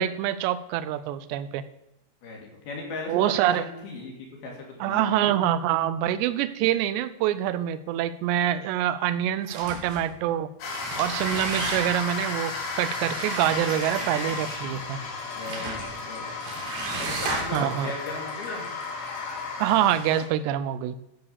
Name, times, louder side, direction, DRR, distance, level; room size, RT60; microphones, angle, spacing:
voice 1, 0.0-1.6 3.1-3.7 4.8-10.5 11.0-15.0 17.5-17.9 19.6-21.0, right 11 dB, 85° right, 14 dB, 2.7 m, -25 dB
voice 2, 2.2-4.1 4.4-5.5 15.4-16.5 17.0-18.7, left 3 dB, 60° left, 0 dB, 3.9 m, -37 dB
sound 1, 9.4-10.1 10.7-12.2 13.0-14.7 15.4-15.9 16.4-17.7, right 3 dB, 60° right, 3.8 m, -34 dB
sound 2, 10.6-20.3, left 3 dB, 80° left, 4.2 m, -34 dB
12.5 x 4.8 x 6.8 m, 0.88 s
omnidirectional pair, 5.0 m